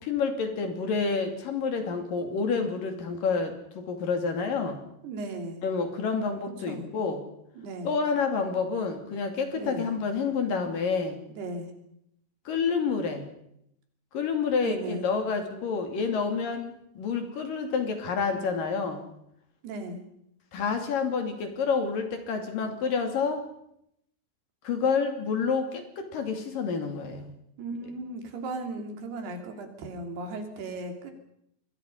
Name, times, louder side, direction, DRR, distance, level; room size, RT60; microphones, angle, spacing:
voice 1, 0.0-4.8 5.6-7.2 7.8-11.2 12.5-13.3 14.1-19.1 20.5-23.4 24.6-27.3, left 5 dB, 60° left, 5 dB, 4.2 m, -28 dB
voice 2, 5.0-5.6 6.7-6.9 7.6-8.0 9.6-9.9 11.3-11.7 14.6-15.0 19.6-20.0 27.6-31.1, right 2 dB, 75° right, 5 dB, 5.0 m, -36 dB
26.5 x 22.0 x 5.5 m, 0.76 s
omnidirectional pair, 4.7 m